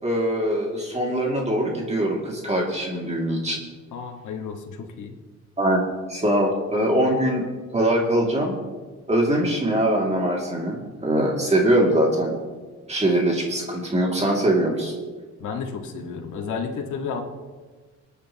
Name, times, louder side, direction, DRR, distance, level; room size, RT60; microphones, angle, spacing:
voice 1, 0.0-3.6 5.6-5.8 6.1-7.5 7.7-8.7 9.1-12.3 12.9-14.9, right 1 dB, 20° right, -2 dB, 2.6 m, -22 dB
voice 2, 3.9-5.1 15.4-17.2, left 5 dB, 80° left, 1 dB, 1.8 m, -32 dB
27.0 x 9.2 x 3.0 m, 1.4 s
cardioid pair, 90°, 30 cm